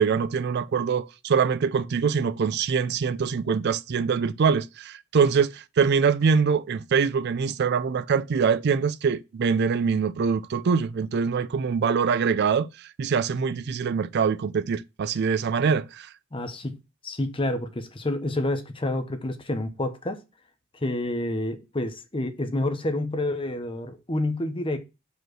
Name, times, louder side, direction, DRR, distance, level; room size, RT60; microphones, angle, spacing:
voice 1, 0.0-16.1, right 6 dB, 55° right, 0.4 m, -24 dB
voice 2, 16.3-16.8 17.0-20.2 20.8-24.8, left 1 dB, 25° left, 0.9 m, -28 dB
5.2 x 4.6 x 6.2 m
head